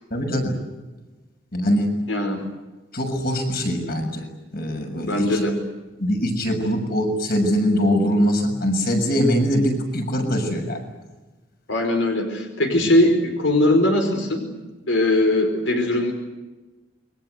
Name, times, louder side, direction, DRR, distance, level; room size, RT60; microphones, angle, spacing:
voice 1, 0.1-0.5 1.5-1.9 2.9-4.3 4.5-5.4 6.0-10.8, equal, 50° left, 4 dB, 6.8 m, -22 dB
voice 2, 2.1-2.4 5.1-5.5 11.7-14.4 14.9-16.1, left 1 dB, 85° left, 4 dB, 4.9 m, -20 dB
28.5 x 24.0 x 8.1 m, 1.2 s
head